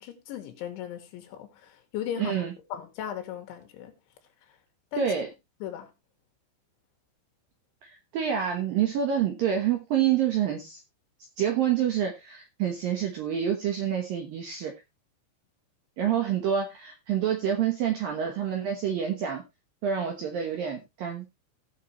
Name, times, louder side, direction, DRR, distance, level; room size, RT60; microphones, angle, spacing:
voice 1, 0.0-2.4 2.7-3.9 4.9-5.1 5.6-5.9, left 9 dB, 75° left, 3.6 m, -37 dB
voice 2, 2.2-2.5 5.0-5.3 7.8-10.8 11.4-14.7 16.0-19.4 19.8-21.3, right 9 dB, 70° right, 2.2 m, -27 dB
17.5 x 5.9 x 3.0 m
omnidirectional pair, 5.7 m